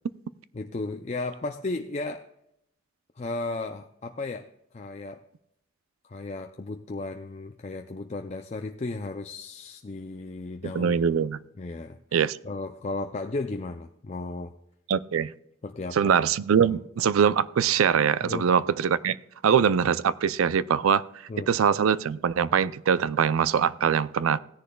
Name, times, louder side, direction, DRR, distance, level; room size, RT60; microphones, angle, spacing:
voice 1, 0.5-2.3 3.2-4.5 4.7-5.2 6.0-11.0 11.6-14.5 15.6-16.1 16.6-16.7 18.2-18.5 21.3-21.5, left 2 dB, 30° left, 0.4 m, -35 dB
voice 2, 10.7-11.4 12.1-12.4 14.9-15.3 15.9-19.2 19.4-21.0 21.5-24.4, right 7 dB, 90° right, 0.4 m, -23 dB
16.5 x 10.0 x 2.3 m
head